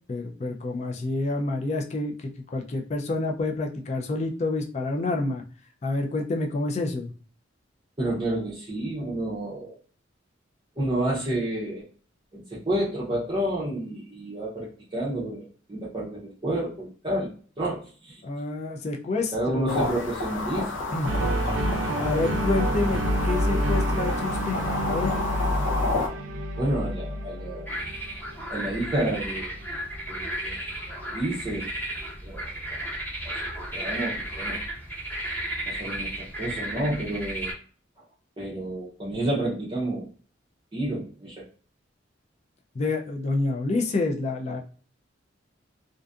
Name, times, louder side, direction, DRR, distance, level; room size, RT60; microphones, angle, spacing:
voice 1, 0.1-5.4 5.8-7.1 18.2-19.9 20.9-21.1 21.7-24.6 24.9-25.1 42.8-44.6, left 2 dB, 35° left, 2 dB, 0.3 m, -28 dB
voice 2, 8.0-9.8 10.8-11.8 12.3-17.3 17.6-18.2 19.3-20.7 26.6-27.7 28.5-29.6 30.1-30.6 30.8-31.7 32.2-32.5 33.2-33.3 33.7-34.6 35.7-37.5 38.4-40.1 40.7-41.4, right 1 dB, 25° right, -6 dB, 0.5 m, -30 dB
sound 1, 19.7-26.1, left 3 dB, 85° left, 0.6 m, -30 dB
sound 2, 21.0-29.2, equal, 75° right, 0.5 m, -28 dB
sound 3, 27.7-37.5, right 1 dB, 10° left, 0.9 m, -34 dB
2.5 x 2.4 x 2.3 m, 0.41 s
head